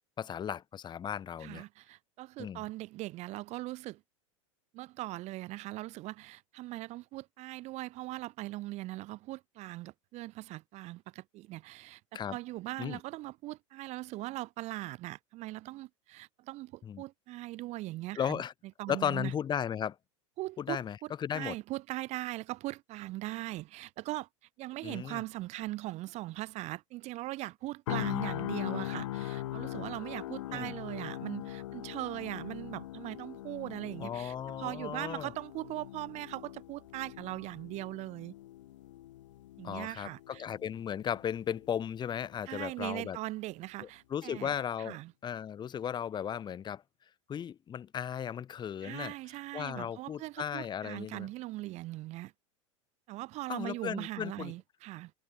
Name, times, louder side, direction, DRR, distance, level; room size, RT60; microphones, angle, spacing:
voice 1, 0.2-1.6 2.4-2.6 12.1-12.4 12.8-13.0 16.8-17.0 18.2-18.5 18.9-20.0 20.6-21.6 24.8-25.2 30.5-30.7 34.0-35.3 39.6-43.2 43.8-46.8 47.3-49.1 49.5-51.3 53.5-54.5, left 8 dB, 25° left, 1.9 m, -36 dB
voice 2, 1.4-4.0 4.7-12.0 12.3-18.4 18.8-19.3 20.4-24.3 24.6-38.3 39.6-40.4 42.5-44.5 44.8-45.1 48.8-52.3 53.1-55.1, right 18 dB, 45° right, 1.8 m, -40 dB
sound 1, 27.9-41.9 42.2-42.4, left 14 dB, 70° left, 0.8 m, -41 dB
hypercardioid pair, 90°, 16 cm